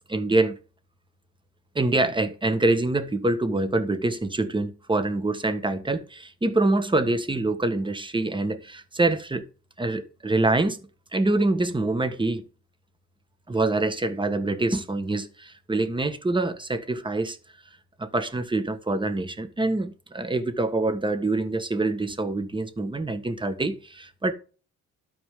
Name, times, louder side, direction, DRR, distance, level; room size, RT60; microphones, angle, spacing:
voice 1, 0.1-0.6 1.7-9.4 9.8-10.8 11.1-12.4 13.5-17.4 18.0-24.3, right 2 dB, 15° right, 1.4 m, -25 dB
12.5 x 5.0 x 3.7 m
cardioid pair, 90°, 30 cm